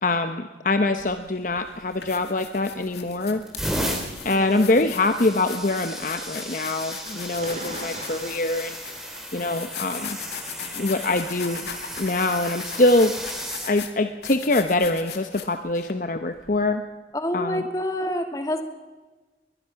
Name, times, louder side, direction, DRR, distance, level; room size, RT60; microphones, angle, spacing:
voice 1, 0.0-3.4 4.2-8.8 9.3-10.2 10.7-11.7 12.0-13.1 13.6-16.8 17.3-17.6, left 2 dB, 45° left, 8 dB, 0.9 m, -24 dB
sound 1, 1.0-13.3, right 2 dB, 40° right, 4.3 m, -45 dB
sound 2, 1.1-1.3 1.8-15.9, left 8 dB, 70° left, 2.2 m, -39 dB
sound 3, 2.5-2.9 3.4-13.7 14.6-14.8 16.4-16.5, equal, ahead, 3.2 m, -35 dB
voice 2, 4.3-4.7 17.1-18.6, left 1 dB, 20° left, 5 dB, 2.2 m, -28 dB
21.5 x 21.5 x 5.8 m, 1.3 s
head